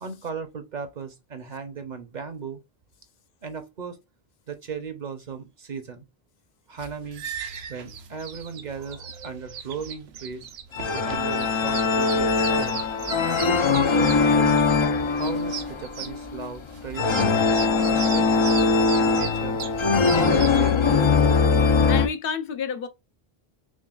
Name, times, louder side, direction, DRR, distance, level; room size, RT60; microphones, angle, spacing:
voice 1, 0.0-2.6 3.4-4.0 4.5-6.0 6.7-7.3 7.7-10.5 10.9-12.8 13.4-14.6 15.1-18.7 19.0-19.6 20.1-21.0, right 6 dB, 50° right, 0.8 m, -37 dB
sound 1, 6.8-20.7, right 7 dB, 85° right, 0.9 m, -38 dB
sound 2, 10.7-22.1, left 4 dB, 45° left, 0.4 m, -21 dB
voice 2, 21.5-22.9, left 7 dB, 65° left, 0.8 m, -30 dB
6.1 x 2.3 x 2.3 m
omnidirectional pair, 1.0 m